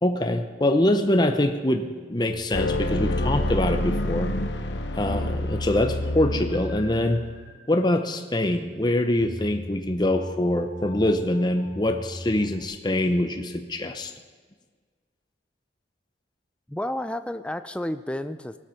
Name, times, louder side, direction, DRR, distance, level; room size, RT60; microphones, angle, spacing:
voice 1, 0.0-4.3 4.9-7.2 7.7-14.1, left 1 dB, 25° left, 6 dB, 0.8 m, -24 dB
sound 1, 2.3-12.6, left 1 dB, 45° left, 5.3 m, -42 dB
sound 2, 2.5-7.4, left 1 dB, 70° left, 1.2 m, -28 dB
voice 2, 16.7-18.6, left 1 dB, 5° left, 10 dB, 0.5 m, -31 dB
18.0 x 12.5 x 5.8 m, 1.5 s
head